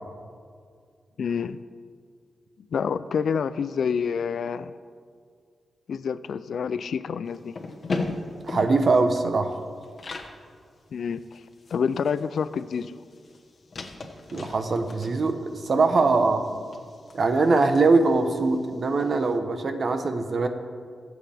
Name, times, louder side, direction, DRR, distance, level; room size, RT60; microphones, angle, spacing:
voice 1, 1.2-1.6 2.7-4.7 5.9-7.6 10.9-11.4 11.7-12.9, left 6 dB, 75° left, 14 dB, 0.4 m, -28 dB
sound 1, 7.3-10.4 10.8-10.9 11.1-19.1, left 3 dB, 50° left, 1.2 m, -38 dB
voice 2, 8.4-9.6 14.3-16.4 17.1-20.5, right 3 dB, 50° right, 7 dB, 1.0 m, -22 dB
22.5 x 7.9 x 3.5 m, 2.1 s
wide cardioid pair, 105°, 0 cm